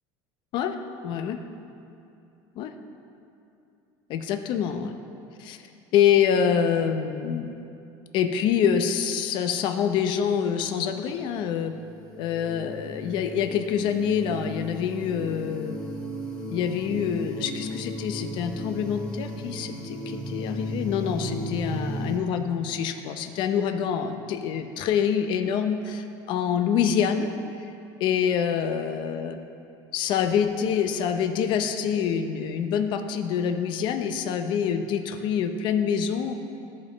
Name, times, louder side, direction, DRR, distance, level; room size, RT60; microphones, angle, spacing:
voice 1, 1.0-1.4 2.6-2.7 4.1-4.9 5.4-5.6 5.9-7.5 8.1-11.7 12.2-15.8 16.5-27.3 28.0-29.4 29.9-36.3, left 8 dB, 50° left, 7 dB, 0.6 m, -26 dB
sound 1, 11.1-22.2, left 1 dB, 10° left, 1.1 m, -35 dB
16.0 x 5.3 x 4.0 m, 2.7 s
cardioid pair, 160°, 10 cm